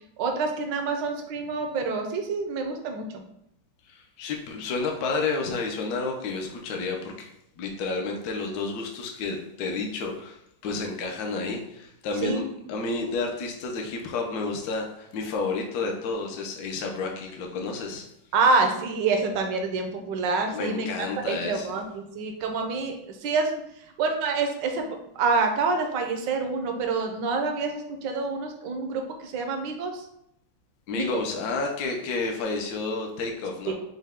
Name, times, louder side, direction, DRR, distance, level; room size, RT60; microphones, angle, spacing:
voice 1, 0.2-3.2 12.2-12.4 18.3-20.9 21.3-23.6 24.0-24.8 25.1-30.0 30.9-31.2 33.7-33.8, right 4 dB, 70° right, 4 dB, 1.2 m, -27 dB
voice 2, 3.9-7.3 7.6-10.4 10.6-18.0 20.5-21.7 30.9-33.7, left 3 dB, 65° left, 1 dB, 1.0 m, -30 dB
5.4 x 2.2 x 3.5 m, 0.78 s
omnidirectional pair, 2.2 m